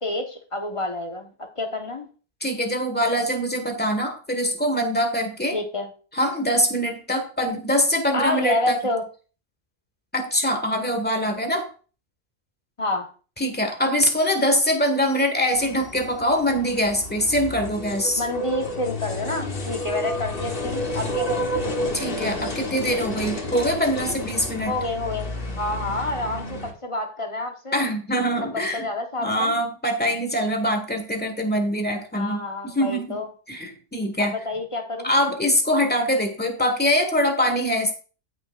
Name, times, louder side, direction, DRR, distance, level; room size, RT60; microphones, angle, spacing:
voice 1, 0.0-2.1 5.5-5.9 8.1-9.0 12.8-13.1 18.1-21.5 24.6-25.3 25.6-27.8 28.4-29.6 32.1-33.3 34.2-35.1, left 2 dB, 25° left, 3 dB, 1.3 m, -28 dB
voice 2, 2.4-5.6 6.2-8.8 10.1-11.7 13.4-18.2 21.9-24.7 27.7-28.9 29.2-33.2 33.5-34.4 35.0-37.9, equal, 10° left, 5 dB, 1.7 m, -23 dB
sound 1, 15.5-26.7, equal, 50° left, 1.6 m, -30 dB
14.5 x 6.1 x 2.6 m, 0.38 s
omnidirectional pair, 1.2 m